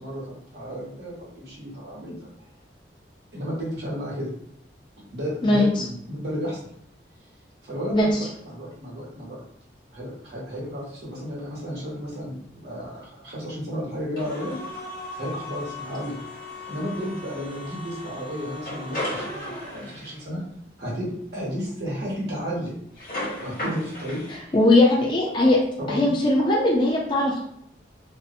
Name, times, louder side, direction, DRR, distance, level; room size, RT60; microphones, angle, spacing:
voice 1, 0.0-2.3 3.3-4.3 5.1-6.6 7.6-9.4 9.9-12.3 12.6-14.8 15.2-16.2 16.7-20.4 20.8-22.8 23.3-24.6 25.8-26.1, equal, 65° right, -5 dB, 1.0 m, -33 dB
sound 1, 14.2-20.2 23.0-24.3, left 1 dB, 50° left, 0.9 m, -35 dB
voice 2, 24.5-25.6 25.9-27.4, left 1 dB, 25° left, -3 dB, 0.3 m, -19 dB
2.6 x 2.0 x 2.5 m, 0.72 s
head